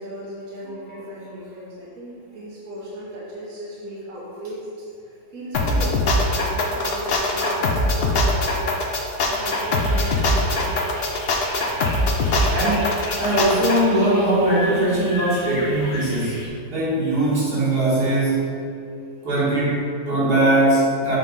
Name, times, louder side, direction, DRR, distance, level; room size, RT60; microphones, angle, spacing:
voice 1, 0.0-4.7 5.0-8.7 9.2-10.8, equal, 65° right, -7 dB, 1.5 m, -36 dB
sound 1, 5.5-13.8, left 2 dB, 50° left, 0.8 m, -22 dB
sound 2, 9.3-16.5, left 1 dB, 65° left, 2.0 m, -36 dB
voice 2, 12.5-16.4 16.7-18.5 19.2-21.2, right 1 dB, 80° right, -8 dB, 2.5 m, -20 dB
7.7 x 3.5 x 5.4 m, 2.4 s
omnidirectional pair, 1.6 m